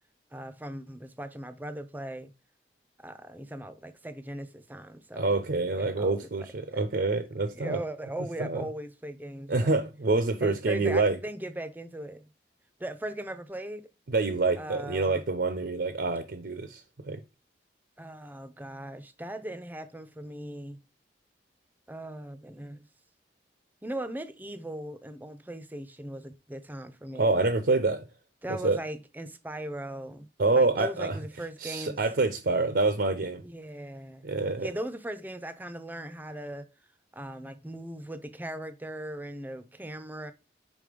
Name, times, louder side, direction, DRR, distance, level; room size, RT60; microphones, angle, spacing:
voice 1, 0.3-2.3 3.0-5.4 5.7-6.9 7.4-9.8 10.4-12.2 12.8-13.9 14.6-15.2 18.0-20.8 21.9-22.9 23.8-27.3 28.4-30.3 30.5-32.0 33.4-34.3 34.6-36.7 37.1-40.3, right 1 dB, 10° right, 0.6 m, -39 dB
voice 2, 5.1-7.8 8.4-8.6 9.5-11.2 14.1-17.2 27.1-28.0 28.6-28.8 30.4-31.2 31.6-33.4 34.2-34.7, right 3 dB, 60° right, 0.6 m, -26 dB
5.3 x 3.7 x 5.0 m
head